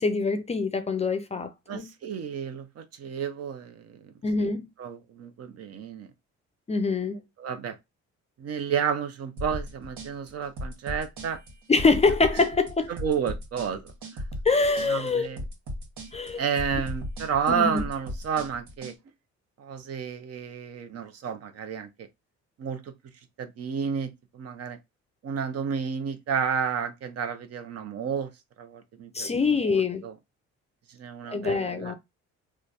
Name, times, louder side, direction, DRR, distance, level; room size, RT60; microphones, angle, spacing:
voice 1, 0.0-1.9 4.2-4.7 6.7-7.2 11.7-12.9 14.4-15.3 16.1-16.4 17.5-17.8 29.1-30.1 31.3-31.9, left 4 dB, 25° left, 0.4 m, -24 dB
voice 2, 1.7-4.5 4.8-6.1 7.4-7.8 8.4-11.4 12.9-13.9 14.9-15.4 16.4-18.9 19.6-22.1 22.6-22.9 23.4-24.8 25.2-28.3 28.6-30.1 30.9-31.9, right 7 dB, 55° right, 0.8 m, -31 dB
sound 1, 9.4-19.0, equal, 80° right, 1.6 m, -37 dB
3.1 x 2.3 x 3.9 m
cardioid pair, 110°, 29 cm